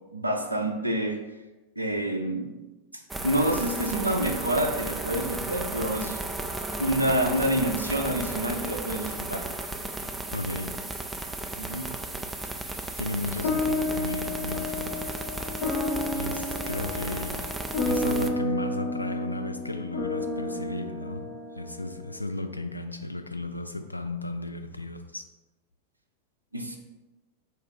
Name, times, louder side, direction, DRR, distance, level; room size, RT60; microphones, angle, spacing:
voice 1, 0.1-1.2 1.8-2.6 2.9-6.2 6.8-9.5 11.5-11.9 26.5-26.8, right 1 dB, 85° right, 3 dB, 0.5 m, -28 dB
sound 1, 3.1-18.3, right 2 dB, 10° right, 0.4 m, -34 dB
voice 2, 10.3-10.8 12.7-15.1 16.1-17.5 17.9-25.2, left 2 dB, 85° left, 6 dB, 0.4 m, -34 dB
sound 2, 13.4-22.1, left 2 dB, 55° left, 1.2 m, -31 dB
4.5 x 2.4 x 4.8 m, 1.1 s
figure-of-eight pair, 90°, 0 cm